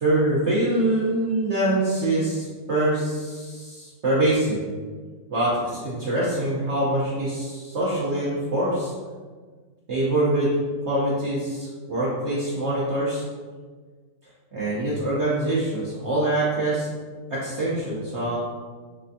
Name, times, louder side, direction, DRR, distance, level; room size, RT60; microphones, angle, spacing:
voice 1, 0.0-4.6 5.3-8.9 9.9-10.5 10.9-13.2 14.5-16.9 17.3-18.4, right 1 dB, 80° right, -8 dB, 0.6 m, -24 dB
3.4 x 3.3 x 2.6 m, 1.5 s
omnidirectional pair, 2.1 m